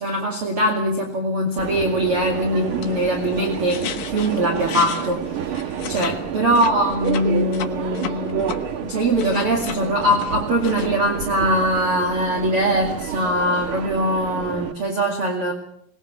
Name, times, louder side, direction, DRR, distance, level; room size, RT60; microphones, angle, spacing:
voice 1, 0.0-5.2 5.9-15.5, right 1 dB, 45° right, 1 dB, 3.0 m, -22 dB
Subway metro underground, 1.6-14.7, right 8 dB, 60° right, 1.5 m, -29 dB
sound 1, 2.5-6.2 6.4-8.6 9.0-10.9, left 9 dB, 65° left, 2.8 m, -34 dB
22.0 x 20.5 x 7.4 m, 0.68 s
omnidirectional pair, 3.9 m